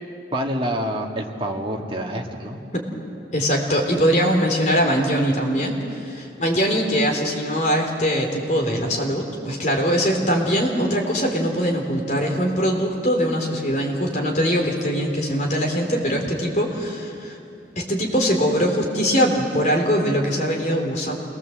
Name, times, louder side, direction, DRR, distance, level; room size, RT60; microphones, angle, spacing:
voice 1, 0.3-2.6, equal, 30° right, 0 dB, 2.1 m, -27 dB
voice 2, 3.3-17.4 17.8-21.2, equal, 40° left, 0 dB, 3.7 m, -22 dB
27.5 x 20.0 x 7.9 m, 2.5 s
head